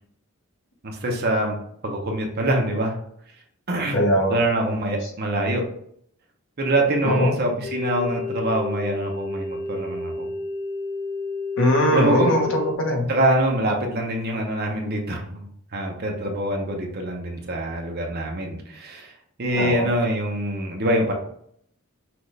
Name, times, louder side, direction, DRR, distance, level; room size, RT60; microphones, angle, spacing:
voice 1, 0.8-1.6 1.8-3.0 3.7-4.0 4.3-5.6 6.6-10.3 11.9-12.4 13.1-15.4 15.7-19.1 19.4-21.1, right 1 dB, 45° right, 1 dB, 0.9 m, -24 dB
voice 2, 3.9-4.4 7.0-7.3 11.6-13.1 19.5-19.9, equal, 60° left, 1 dB, 1.1 m, -21 dB
sound 1, 7.6-12.8, left 4 dB, 35° left, 0.4 m, -30 dB
6.0 x 2.6 x 3.3 m, 0.67 s
head